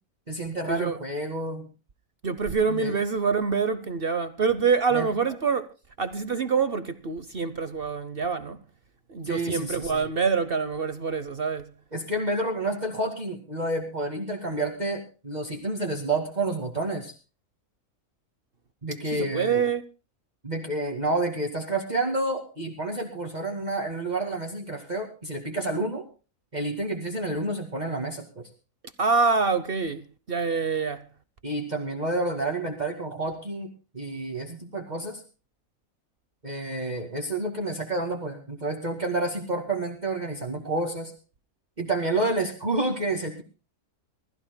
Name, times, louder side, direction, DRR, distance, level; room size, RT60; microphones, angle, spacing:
voice 1, 0.3-1.7 2.7-3.0 4.9-5.1 9.2-10.1 11.9-17.1 18.8-19.6 20.4-26.0 26.5-28.5 31.4-35.2 36.4-41.1 41.8-43.4, right 2 dB, 30° right, 2.4 m, -29 dB
voice 2, 2.2-5.7 6.0-8.6 9.1-11.7 19.1-19.8 29.0-31.0, right 5 dB, 45° right, 1.0 m, -26 dB
25.5 x 15.0 x 2.2 m
omnidirectional pair, 1.6 m